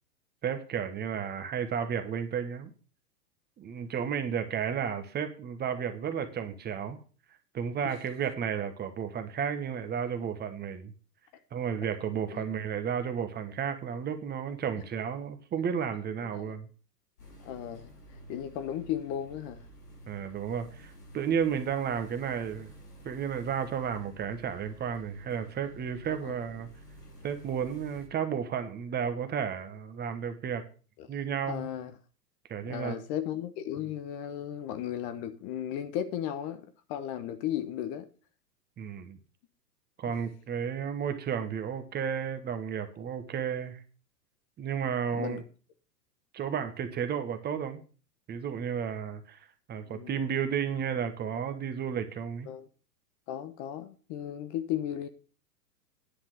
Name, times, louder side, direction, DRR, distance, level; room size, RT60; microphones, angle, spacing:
voice 1, 0.4-2.7 3.6-7.0 7.5-10.9 11.5-16.7 20.1-22.7 23.0-26.7 27.2-30.6 31.1-31.7 32.5-33.0 38.8-39.2 40.0-43.8 44.6-45.4 46.3-47.8 48.3-49.4 49.7-52.5, right 7 dB, 20° right, 1.2 m, -32 dB
sound 1, 17.2-28.1, right 1 dB, 85° left, 5.8 m, -51 dB
voice 2, 17.4-17.9 18.3-19.6 26.2-26.4 31.0-31.1 31.5-31.9 32.7-38.1 45.1-45.4 49.9-50.2 52.5-52.7 53.3-55.1, left 10 dB, 35° left, 1.0 m, -35 dB
10.0 x 5.7 x 6.6 m
hypercardioid pair, 110°, 48 cm